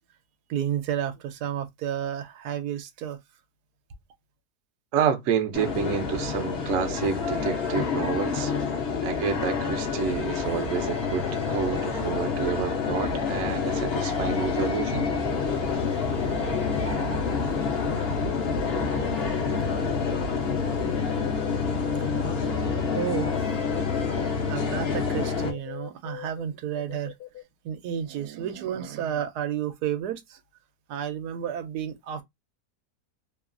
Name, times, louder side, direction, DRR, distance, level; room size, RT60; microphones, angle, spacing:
voice 1, 0.5-3.2 15.3-15.9 16.2-16.3 20.0-20.7 22.1-22.3 22.9-23.4 24.1-27.1 27.6-30.4 30.9-32.2, right 9 dB, 85° right, 1.1 m, -32 dB
voice 2, 4.9-8.5 9.0-15.1, right 7 dB, 65° right, 0.7 m, -29 dB
sound 1, 5.5-25.5, left 5 dB, 50° left, 0.8 m, -28 dB
sound 2, 11.2-14.7 15.1-18.1 18.6-24.3 25.1-26.4 26.7-27.4, left 13 dB, 80° left, 1.1 m, -40 dB
2.9 x 2.3 x 2.4 m
omnidirectional pair, 1.7 m